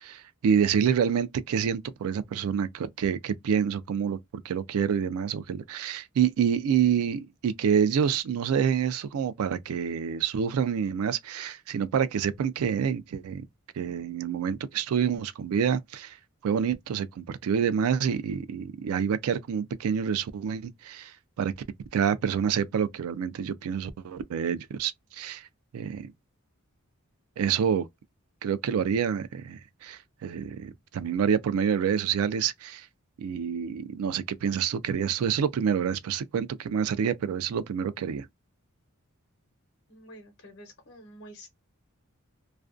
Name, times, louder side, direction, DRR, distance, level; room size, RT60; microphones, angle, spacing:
voice 1, 0.0-4.2 4.4-13.4 13.8-16.2 16.4-21.1 21.4-21.5 21.9-25.4 25.7-26.1 27.4-27.9 28.4-32.9 33.2-38.3, right 7 dB, 85° right, 0.3 m, -27 dB
voice 2, 39.9-41.5, equal, 55° left, 0.8 m, -48 dB
2.4 x 2.2 x 2.4 m
head